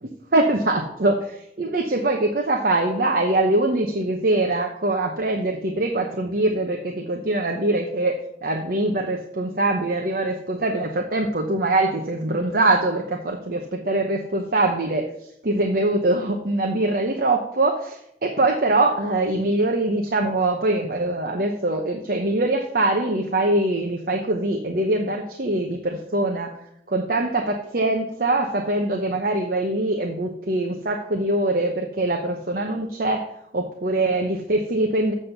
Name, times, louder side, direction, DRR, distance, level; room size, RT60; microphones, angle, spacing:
voice 1, 0.3-15.1 15.4-26.5 26.9-33.2 33.5-35.1, right 2 dB, 55° right, 2 dB, 0.9 m, -23 dB
7.6 x 6.1 x 6.6 m, 0.74 s
head